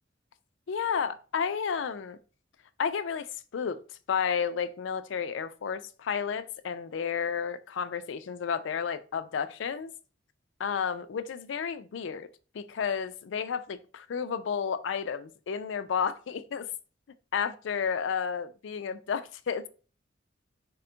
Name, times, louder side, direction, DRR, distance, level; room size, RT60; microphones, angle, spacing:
voice 1, 0.7-2.2 2.8-3.3 3.5-3.8 4.1-9.9 10.6-12.3 12.5-16.7 17.3-19.7, left 6 dB, 70° left, 0.4 m, -31 dB
4.3 x 2.2 x 3.8 m
head